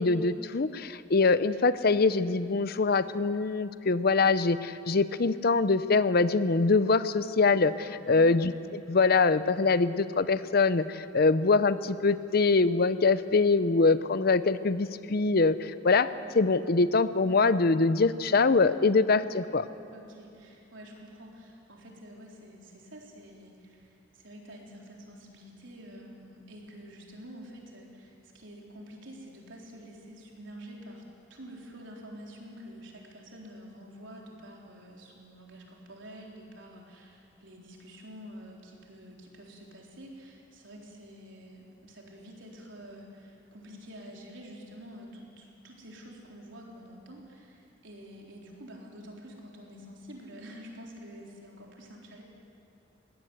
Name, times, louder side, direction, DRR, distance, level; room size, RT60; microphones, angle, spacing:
voice 1, 0.0-19.7, left 4 dB, 55° left, 14 dB, 0.7 m, -24 dB
voice 2, 19.9-31.0 31.3-52.2, equal, 85° right, -1 dB, 3.9 m, -48 dB
21.5 x 17.5 x 8.1 m, 2.6 s
head